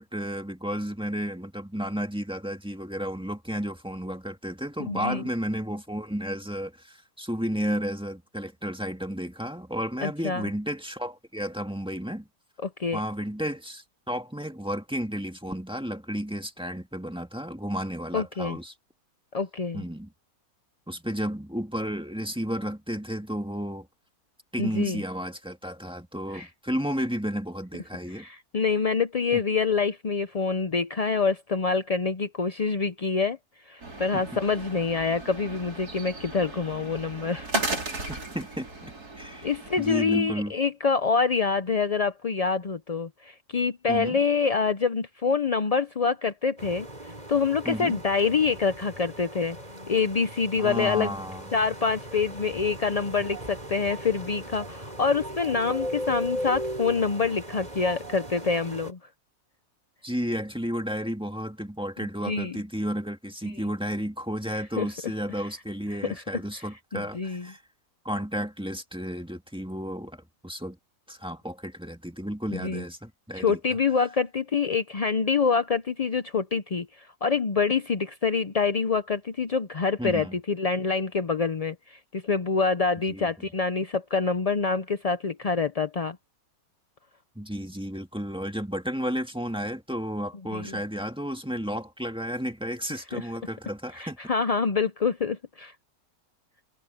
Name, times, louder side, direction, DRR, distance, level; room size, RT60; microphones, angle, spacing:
voice 1, 0.0-12.3 12.9-18.7 19.7-20.1 20.9-23.9 24.5-28.2 29.3-29.4 34.1-34.4 38.1-39.5 39.8-40.5 43.9-44.2 47.6-48.0 50.6-51.5 60.0-67.6 68.0-70.8 71.1-73.8 80.0-80.4 83.1-83.3 87.3-94.2, equal, 5° right, 1.7 m, -32 dB
voice 2, 4.9-5.2 10.0-10.5 12.6-13.0 18.1-18.6 19.3-19.8 24.6-25.0 26.3-26.5 28.1-33.4 33.7-37.6 38.0-38.2 39.4-46.9 47.3-49.6 49.9-51.1 51.5-59.0 62.2-62.6 64.5-65.1 66.1-66.2 66.6-67.5 72.5-72.8 73.3-86.2 90.5-90.8 93.1-93.3 93.9-95.7, left 5 dB, 50° left, 0.4 m, -26 dB
sound 1, 33.8-40.0, right 2 dB, 85° right, 5.0 m, -36 dB
sound 2, 46.6-58.9, equal, 25° right, 4.9 m, -38 dB
omnidirectional pair, 1.6 m